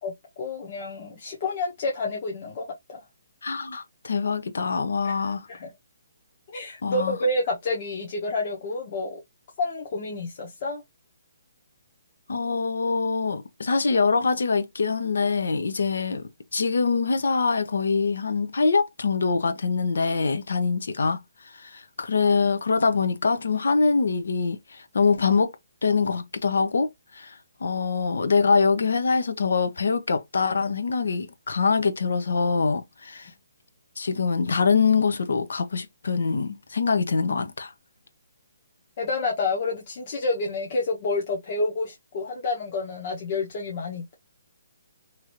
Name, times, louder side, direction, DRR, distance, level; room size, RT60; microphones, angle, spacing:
voice 1, 0.0-3.0 5.0-5.2 5.5-5.7 6.5-9.2 9.6-10.8 39.0-44.1, left 2 dB, 35° left, 0.9 m, -29 dB
voice 2, 3.4-5.5 6.8-7.2 12.3-21.2 21.6-25.5 25.8-27.3 27.6-33.3 34.0-37.7, left 4 dB, 80° left, 0.7 m, -24 dB
2.9 x 2.5 x 2.9 m
hypercardioid pair, 165°, 0 cm